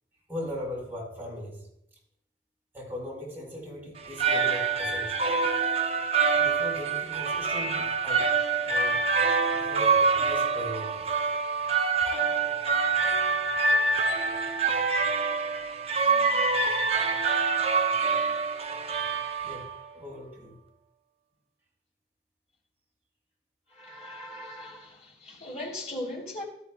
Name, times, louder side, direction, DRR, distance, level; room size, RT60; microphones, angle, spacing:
voice 1, 0.3-1.7 2.7-5.3 6.3-8.3 8.6-9.0 9.5-11.1 19.4-19.7 19.9-20.6, left 1 dB, 10° right, 5.1 m, -39 dB
sound 1, 4.0-19.9, right 4 dB, 35° right, 0.7 m, -26 dB
voice 2, 23.8-24.9 25.3-26.4, left 1 dB, 40° left, 3.7 m, -38 dB
17.0 x 12.5 x 2.4 m
head